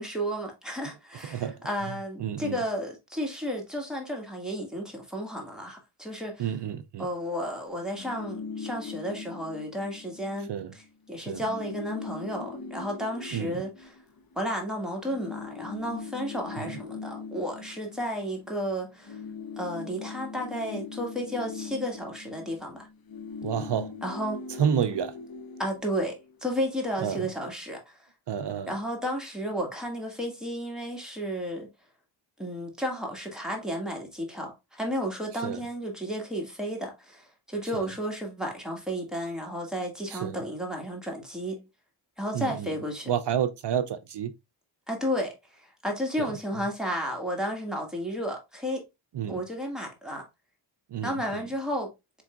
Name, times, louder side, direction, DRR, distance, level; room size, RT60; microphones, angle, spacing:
voice 1, 0.0-6.5 7.0-10.5 10.7-14.0 14.3-19.2 19.6-22.9 24.0-24.4 25.6-28.0 28.7-31.7 32.4-41.6 42.2-43.1 44.9-48.8 49.3-50.2 51.0-51.9, equal, ahead, 1.7 m, -33 dB
voice 2, 1.2-1.6 2.2-2.6 6.4-7.1 10.5-10.7 11.3-11.4 13.3-13.5 16.6-16.7 23.4-23.9 24.6-25.1 27.0-27.3 28.3-28.7 35.4-35.6 37.7-37.9 40.1-40.4 42.3-42.7 43.1-44.3 46.2-46.3 49.1-49.4 50.9-51.4, right 8 dB, 55° right, 0.5 m, -30 dB
sound 1, 7.9-10.4 10.7-10.9 11.2-14.6 15.1-18.6 18.9-26.5, left 5 dB, 45° left, 0.7 m, -41 dB
4.5 x 3.7 x 2.3 m
cardioid pair, 70°, 50 cm